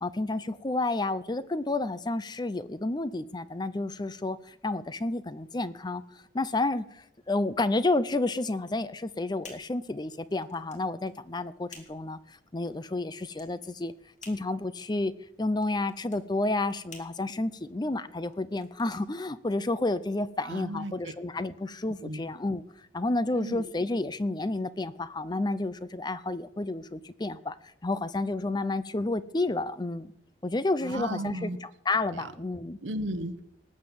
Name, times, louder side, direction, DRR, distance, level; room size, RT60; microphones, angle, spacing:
voice 1, 0.0-6.0 6.3-12.2 12.5-13.9 14.2-15.1 15.4-22.6 22.9-27.5 27.8-30.1 30.4-32.8, left 2 dB, 20° left, 15 dB, 0.5 m, -30 dB
sound 1, 8.6-19.9, left 4 dB, 40° left, 2.7 m, -54 dB
voice 2, 20.4-21.1 22.0-22.2 23.3-23.6 30.8-31.6 32.8-33.5, right 1 dB, 80° right, 11 dB, 1.1 m, -35 dB
19.5 x 7.7 x 7.1 m, 0.77 s
head